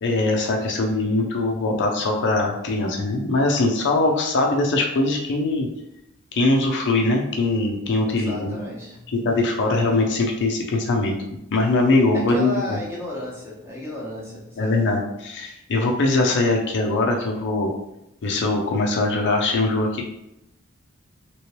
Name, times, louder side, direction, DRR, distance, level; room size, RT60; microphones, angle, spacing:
voice 1, 0.0-5.7 6.3-8.6 9.1-11.2 11.5-12.6 14.6-17.7 18.2-20.1, left 2 dB, 55° left, 2 dB, 0.5 m, -21 dB
voice 2, 8.0-9.1 12.1-14.9, left 1 dB, 10° right, -5 dB, 0.9 m, -33 dB
3.0 x 3.0 x 2.9 m, 0.84 s
head